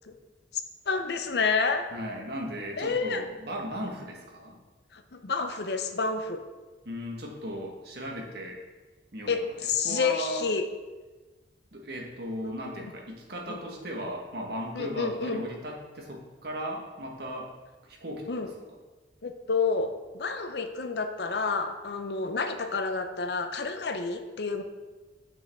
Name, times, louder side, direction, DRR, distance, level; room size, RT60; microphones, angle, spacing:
voice 1, 0.9-1.9 2.8-3.2 4.9-6.4 9.3-10.6 12.4-12.5 13.5-13.6 14.7-15.4 18.3-18.5 19.2-24.6, left 4 dB, 65° left, 7 dB, 0.7 m, -29 dB
voice 2, 1.9-4.6 6.8-8.6 9.1-9.3 9.8-10.4 11.7-17.5 17.8-18.3, equal, 60° right, 0 dB, 1.5 m, -36 dB
9.1 x 6.1 x 3.5 m, 1.3 s
head